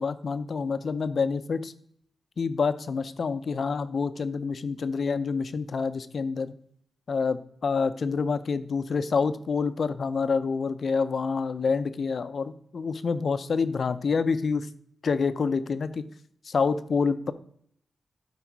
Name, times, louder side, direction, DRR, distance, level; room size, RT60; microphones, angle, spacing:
voice 1, 0.0-1.7 2.4-6.5 7.1-14.7 15.0-16.0 16.5-17.3, left 5 dB, 50° left, 12 dB, 0.6 m, -27 dB
12.5 x 5.1 x 4.6 m, 0.65 s
wide cardioid pair, 135°, 0 cm